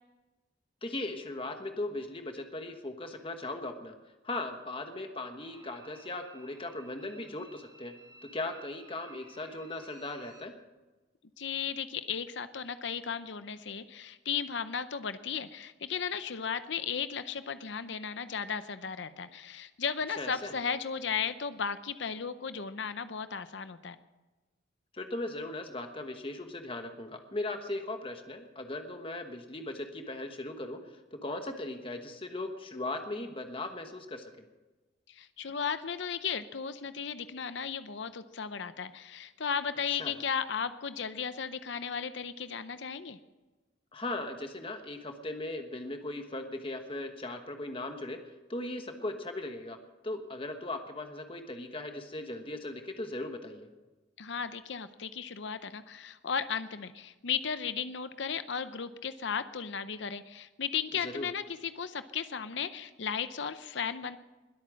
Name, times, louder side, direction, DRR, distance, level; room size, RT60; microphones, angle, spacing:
voice 1, 0.8-3.9 4.2-7.9 8.2-10.5 20.2-20.5 24.9-34.3 39.9-40.1 43.9-48.2 48.5-49.8 50.0-53.7 61.0-61.3, left 2 dB, 25° left, 5 dB, 1.2 m, -38 dB
sound 1, 5.4-10.4, right 2 dB, 20° right, 1.4 m, -56 dB
voice 2, 11.4-24.0 35.1-43.2 54.2-64.2, left 6 dB, 70° left, 12 dB, 0.7 m, -35 dB
21.0 x 8.5 x 6.3 m, 1.2 s
head